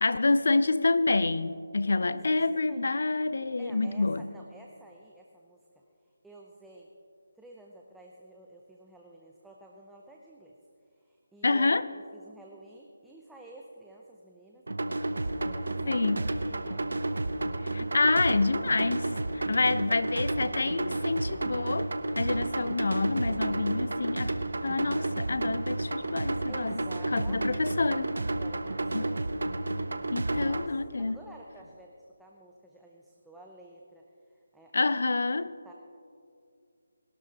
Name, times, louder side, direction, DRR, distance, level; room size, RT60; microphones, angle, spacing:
voice 1, 0.0-4.3 11.4-11.8 15.9-16.3 17.7-24.4 24.6-26.8 27.1-28.1 28.9-29.0 30.1-31.2 34.7-35.5, left 3 dB, 70° left, 14 dB, 0.6 m, -27 dB
voice 2, 2.0-2.9 3.6-5.8 6.2-6.9 7.4-10.5 10.9-14.6 15.1-16.9 19.5-20.5 26.5-27.7 28.4-29.3 30.3-34.9 35.4-35.7, right 1 dB, 5° right, -2 dB, 0.6 m, -51 dB
sound 1, 14.7-30.7, right 2 dB, 80° right, 0.8 m, -31 dB
20.5 x 12.5 x 2.9 m, 2.4 s
figure-of-eight pair, 160°, 0 cm